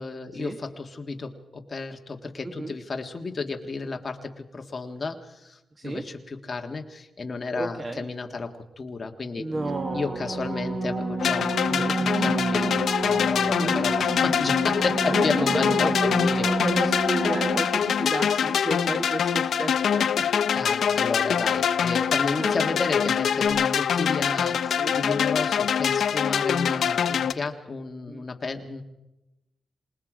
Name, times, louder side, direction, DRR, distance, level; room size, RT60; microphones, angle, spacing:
voice 1, 0.0-9.5 9.9-16.5 20.5-28.8, left 3 dB, 30° left, 4 dB, 1.6 m, -32 dB
voice 2, 7.5-8.1 9.4-10.3 11.8-12.0 13.6-13.9 15.1-20.2 22.3-22.7 24.7-25.0 28.1-28.2, right 2 dB, 30° right, 6 dB, 1.2 m, -33 dB
sound 1, 9.5-18.1 23.5-23.6, right 3 dB, 75° right, 6.1 m, -29 dB
sound 2, 11.2-27.3, left 7 dB, 75° left, 0.6 m, -24 dB
27.0 x 19.5 x 5.0 m, 0.98 s
wide cardioid pair, 165°, 0 cm